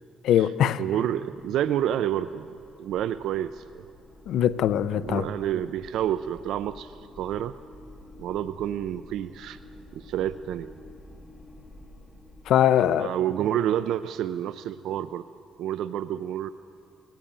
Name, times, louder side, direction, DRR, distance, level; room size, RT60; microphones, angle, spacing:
voice 1, 0.2-0.8 4.3-5.3 12.5-13.1, left 10 dB, 70° left, 0.6 m, -22 dB
voice 2, 0.8-2.5 2.8-3.8 4.9-7.5 8.2-9.6 9.9-10.7 13.0-15.3 15.6-16.5, right 11 dB, 70° right, 0.4 m, -29 dB
sound 1, 1.0-12.6, left 1 dB, 20° left, 1.7 m, -49 dB
19.5 x 16.0 x 8.8 m
cardioid pair, 155°, 0 cm